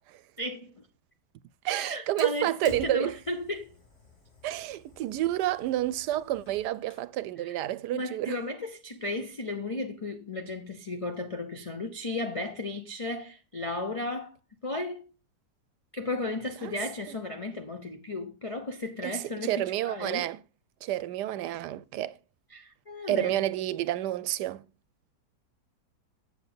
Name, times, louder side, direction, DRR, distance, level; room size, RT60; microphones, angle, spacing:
voice 1, 0.4-0.7 1.7-3.7 7.4-7.6 7.9-14.3 14.6-15.1 15.9-20.3 22.5-23.4, left 2 dB, 55° left, 0.3 m, -34 dB
voice 2, 1.6-3.2 4.4-8.4 16.6-16.7 17.1-17.2 19.0-20.4 20.8-22.1 23.1-24.7, right 14 dB, 80° right, 1.2 m, -29 dB
Fire, 2.2-7.1, left 3 dB, 40° left, 3.0 m, -52 dB
7.8 x 7.2 x 3.9 m
omnidirectional pair, 1.8 m